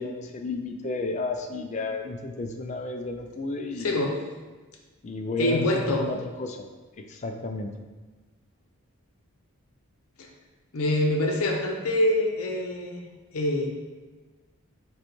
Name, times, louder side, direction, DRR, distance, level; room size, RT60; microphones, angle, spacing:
voice 1, 0.0-3.9 5.0-6.7 7.1-7.7, left 3 dB, 30° left, 5 dB, 0.3 m, -32 dB
voice 2, 3.8-4.2 5.4-6.0 10.2-10.3 10.7-13.7, left 1 dB, 75° left, 1 dB, 0.7 m, -25 dB
5.1 x 2.3 x 4.5 m, 1.3 s
head